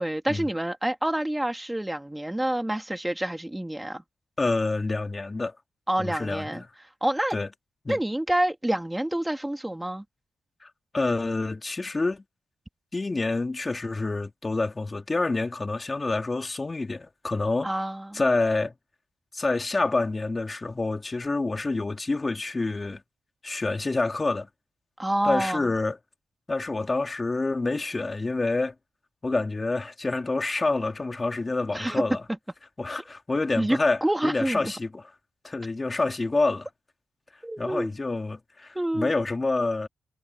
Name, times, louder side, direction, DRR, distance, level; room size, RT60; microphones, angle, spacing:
voice 1, 0.0-4.0 5.9-6.6 7.0-7.4 7.9-10.0 17.6-18.2 25.0-25.7 31.7-32.0 33.6-34.7 37.4-37.9 38.7-39.1, right 1 dB, 10° right, 2.8 m, -27 dB
voice 2, 4.4-5.5 6.0-6.7 7.3-7.5 7.9-8.0 10.6-12.2 12.9-17.7 18.1-18.7 19.3-23.0 23.4-24.5 25.2-26.0 26.5-28.7 29.2-32.2 32.8-35.1 35.4-36.7 37.6-39.9, left 3 dB, 35° left, 3.5 m, -27 dB
supercardioid pair, 50°, 0 cm